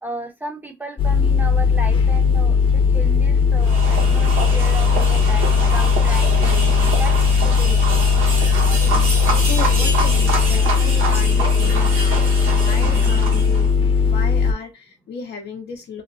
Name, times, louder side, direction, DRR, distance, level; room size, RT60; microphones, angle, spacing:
voice 1, 0.0-6.4 6.9-7.2 7.4-7.8, right 1 dB, 10° right, 0.8 m, -34 dB
sound 1, 1.0-14.5, left 6 dB, 25° left, 0.8 m, -17 dB
sound 2, 3.6-13.7, right 3 dB, 85° right, 1.1 m, -26 dB
voice 2, 9.0-16.0, left 5 dB, 55° left, 0.7 m, -35 dB
3.0 x 2.1 x 2.5 m
cardioid pair, 90°, 20 cm